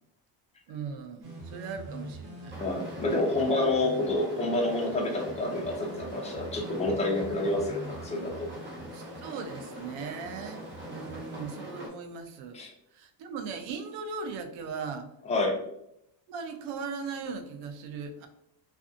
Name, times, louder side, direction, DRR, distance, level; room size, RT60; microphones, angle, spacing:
voice 1, 0.7-2.5 8.9-12.6 12.9-15.1 16.3-18.3, right 5 dB, 85° right, 6 dB, 0.6 m, -38 dB
sound 1, 1.2-11.5, right 1 dB, 65° right, 1.0 m, -45 dB
sound 2, 2.5-11.9, equal, 25° right, 0.9 m, -43 dB
voice 2, 2.6-8.5 12.5-12.7 15.3-15.6, left 2 dB, 15° left, 0 dB, 0.4 m, -28 dB
2.5 x 2.3 x 2.4 m, 0.79 s
cardioid pair, 120°, 46 cm